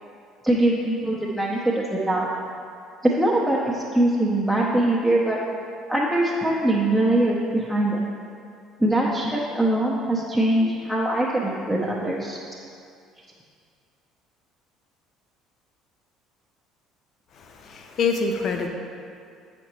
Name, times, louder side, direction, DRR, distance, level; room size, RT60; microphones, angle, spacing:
voice 1, 0.4-2.3 3.0-5.4 5.9-8.0 8.8-12.4, right 1 dB, 5° right, -4 dB, 0.8 m, -22 dB
voice 2, 17.3-18.7, left 4 dB, 50° left, 4 dB, 0.6 m, -26 dB
8.0 x 5.1 x 3.1 m, 2.4 s
figure-of-eight pair, 55°, 0 cm